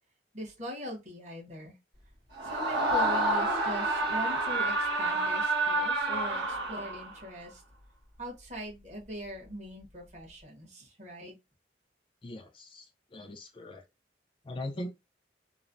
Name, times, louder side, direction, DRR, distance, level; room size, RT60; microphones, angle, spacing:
voice 1, 0.3-1.7 2.4-7.6 8.2-11.3, equal, 40° right, 1.2 m, -41 dB
Screaming, 2.4-7.2, right 2 dB, 75° right, 1.6 m, -29 dB
voice 2, 12.2-12.9 13.1-13.8 14.4-14.9, left 1 dB, 30° left, 0.4 m, -40 dB
3.0 x 2.0 x 2.5 m
head